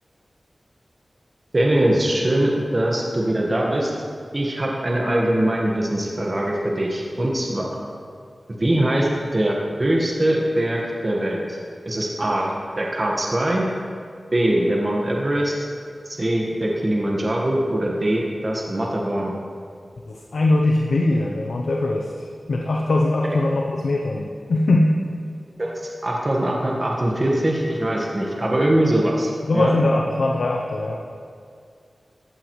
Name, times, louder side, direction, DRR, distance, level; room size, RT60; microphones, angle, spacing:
voice 1, 1.5-3.9 4.3-7.7 8.6-11.6 11.8-13.6 14.3-15.5 16.0-19.3 23.2-23.4 25.6-29.7, right 1 dB, 40° right, -2 dB, 1.5 m, -22 dB
voice 2, 20.1-24.9 29.5-31.0, left 2 dB, 85° left, 0 dB, 0.7 m, -21 dB
15.0 x 8.3 x 3.2 m, 2.2 s
cardioid pair, 50°, 0 cm